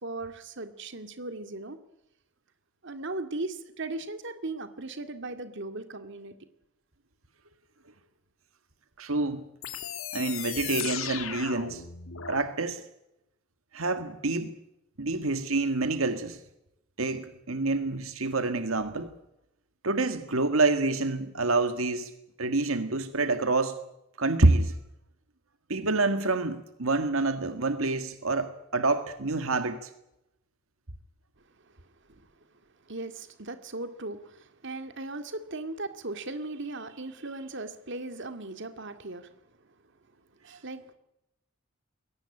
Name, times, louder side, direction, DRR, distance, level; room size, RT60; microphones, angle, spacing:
voice 1, 0.0-1.8 2.8-6.4 31.6-32.3 32.9-39.3 40.4-41.0, right 2 dB, 60° right, 9 dB, 2.2 m, -38 dB
voice 2, 9.0-9.4 10.1-11.8 12.3-12.8 13.7-14.5 15.0-16.4 17.0-19.1 19.8-22.1 22.4-23.8 24.2-24.7 25.7-29.9, right 3 dB, 80° right, 9 dB, 1.7 m, -27 dB
sound 1, 9.6-12.5, left 9 dB, 80° left, 2.3 m, -36 dB
22.0 x 17.5 x 9.9 m, 0.85 s
head